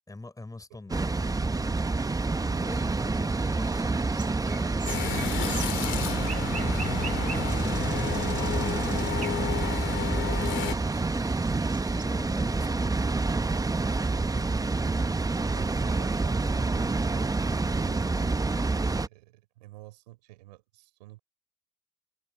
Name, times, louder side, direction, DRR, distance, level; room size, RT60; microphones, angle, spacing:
voice 1, 0.1-1.8 2.6-2.9 3.2-6.5 10.4-13.3, left 2 dB, 15° left, 4.5 m, -47 dB
Water, 0.9-19.1, right 3 dB, 15° right, 1.1 m, -28 dB
voice 2, 1.6-3.2 12.3-12.7 13.9-21.2, right 18 dB, 85° right, 5.4 m, -51 dB
sound 1, 2.7-12.1, right 5 dB, 35° right, 2.8 m, -45 dB
sound 2, 4.9-10.7, left 14 dB, 65° left, 2.7 m, -33 dB
hypercardioid pair, 55°, 21 cm